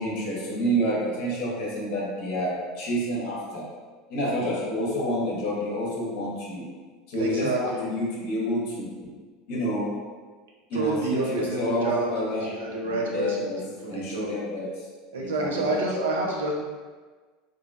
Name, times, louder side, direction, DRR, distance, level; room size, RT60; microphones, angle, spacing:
voice 1, 0.0-3.7 4.1-6.6 7.1-9.1 9.5-9.9 10.7-12.5 12.8-13.6 13.9-14.7 15.2-15.7, equal, 60° left, -5 dB, 0.7 m, -28 dB
voice 2, 4.2-4.5 7.2-7.9 10.7-12.1 12.4-14.3 15.1-16.5, right 2 dB, 80° right, -1 dB, 0.5 m, -29 dB
2.5 x 2.1 x 2.5 m, 1.4 s
hypercardioid pair, 80°, 0 cm